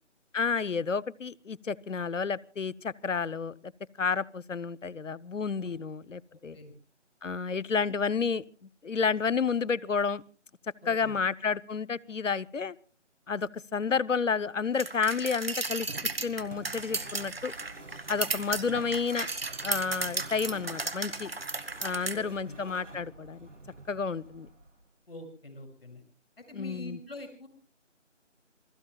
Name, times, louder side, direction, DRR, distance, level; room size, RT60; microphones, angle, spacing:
voice 1, 0.3-3.7 4.0-6.6 7.2-8.4 8.8-10.2 10.9-12.8 13.3-15.9 16.2-17.5 18.1-19.3 19.6-21.3 21.8-23.5 23.9-24.5 26.5-27.0, left 5 dB, 80° left, 19 dB, 0.9 m, -30 dB
voice 2, 6.3-6.7 10.8-11.2 22.1-22.6 25.1-26.0 26.4-27.5, left 2 dB, 50° left, 4 dB, 6.7 m, -45 dB
sound 1, 14.8-22.2, right 3 dB, 50° right, 1.7 m, -34 dB
sound 2, 15.5-24.9, right 2 dB, 75° right, 4.1 m, -49 dB
28.0 x 19.5 x 2.3 m, 0.37 s
figure-of-eight pair, 175°, 37 cm